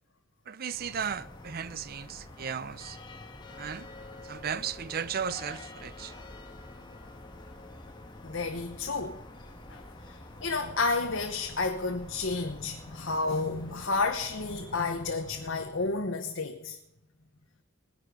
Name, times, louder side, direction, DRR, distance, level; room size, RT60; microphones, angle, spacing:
voice 1, 0.5-3.0 3.6-3.9 4.2-6.1, right 7 dB, 45° right, 0.5 m, -35 dB
sound 1, 0.7-16.2, left 2 dB, 20° left, 1.6 m, -47 dB
voice 2, 8.2-9.2 9.7-9.8 10.4-16.8, left 3 dB, 65° left, 1.2 m, -31 dB
19.5 x 11.0 x 5.1 m
head